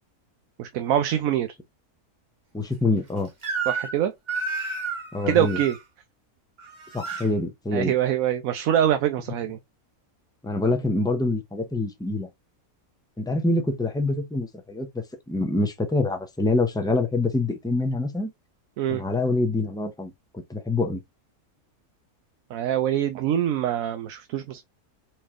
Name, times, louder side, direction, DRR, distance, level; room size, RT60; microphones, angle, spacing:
voice 1, 0.6-1.5 3.7-4.1 5.3-5.8 7.7-9.6 18.8-19.0 22.5-24.6, right 10 dB, 70° right, 1.0 m, -24 dB
voice 2, 2.5-3.3 5.1-5.6 6.9-7.9 10.4-12.3 13.2-14.9 15.3-18.3 18.9-21.0, left 2 dB, 5° left, 0.3 m, -25 dB
Crying sobbing / Screech, 3.4-4.0 4.3-5.8 6.6-7.3, right 4 dB, 35° right, 1.1 m, -31 dB
4.3 x 3.2 x 3.6 m
omnidirectional pair, 1.6 m